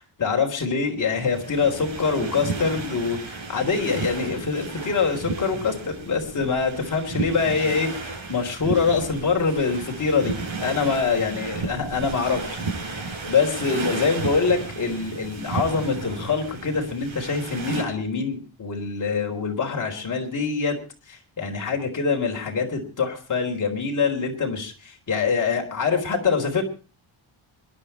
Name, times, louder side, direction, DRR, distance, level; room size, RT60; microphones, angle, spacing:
voice 1, 0.0-20.8 21.1-26.6, left 5 dB, 40° left, 1 dB, 3.9 m, -25 dB
sound 1, 1.1-17.8, right 4 dB, 70° right, 8.0 m, -33 dB
25.5 x 11.5 x 4.4 m, 0.36 s
wide cardioid pair, 160°, 48 cm